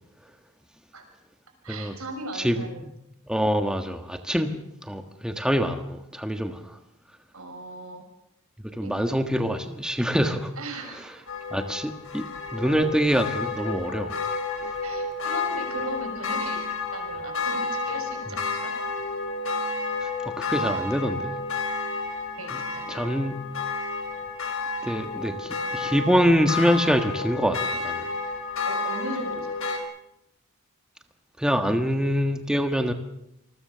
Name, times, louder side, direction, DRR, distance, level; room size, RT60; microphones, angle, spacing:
voice 1, 1.6-2.8 7.3-8.0 8.8-9.0 10.6-11.3 14.8-16.6 16.9-18.7 22.4-23.2 28.7-29.6, right 2 dB, 70° right, 6 dB, 6.2 m, -37 dB
voice 2, 2.3-2.9 3.3-6.8 8.7-10.5 11.5-14.2 20.0-21.3 22.5-22.6 22.9-23.4 24.8-28.1 31.4-32.9, equal, 5° right, 6 dB, 1.4 m, -25 dB
sound 1, 11.3-29.8, left 4 dB, 65° left, 4.8 m, -31 dB
27.5 x 21.0 x 6.8 m, 0.81 s
head